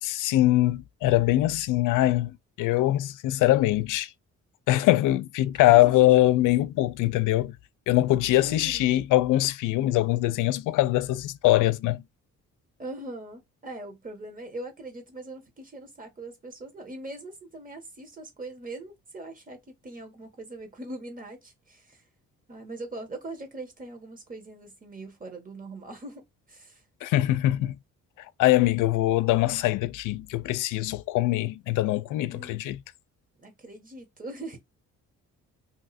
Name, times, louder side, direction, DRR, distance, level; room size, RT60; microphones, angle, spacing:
voice 1, 0.0-4.1 4.7-7.6 7.9-12.0 27.0-27.8 28.4-32.8, left 16 dB, 85° left, 0.5 m, -23 dB
voice 2, 5.7-6.1 8.4-9.0 12.8-22.0 22.5-26.8 32.3-32.6 33.4-34.6, right 2 dB, 25° right, 1.5 m, -41 dB
2.7 x 2.5 x 4.1 m
cardioid pair, 90°, 30 cm